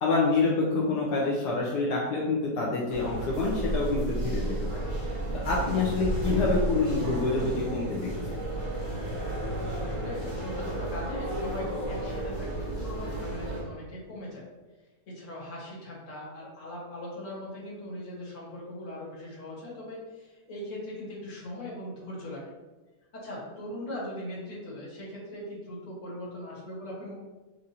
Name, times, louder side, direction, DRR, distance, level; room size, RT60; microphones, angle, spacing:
voice 1, 0.0-4.6 5.4-8.4, left 3 dB, 80° left, -3 dB, 1.3 m, -27 dB
sound 1, 2.9-13.6, right 1 dB, 30° right, 1.2 m, -32 dB
voice 2, 9.8-14.4 15.1-22.4 23.1-27.1, left 1 dB, 50° left, -6 dB, 1.7 m, -40 dB
6.3 x 2.5 x 2.8 m, 1.2 s
omnidirectional pair, 1.8 m